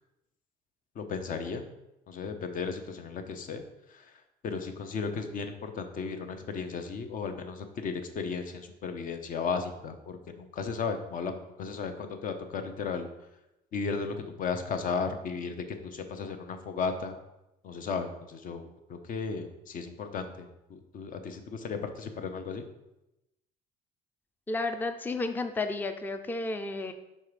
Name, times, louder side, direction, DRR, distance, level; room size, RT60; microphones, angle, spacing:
voice 1, 1.0-1.6 2.1-3.6 3.9-4.0 4.4-13.1 13.7-15.6 15.8-17.1 17.6-22.6, left 5 dB, 55° left, 7 dB, 0.8 m, -35 dB
voice 2, 24.5-26.9, left 3 dB, 10° left, 7 dB, 0.4 m, -32 dB
5.5 x 3.6 x 5.0 m, 0.92 s
cardioid pair, 110°, 17 cm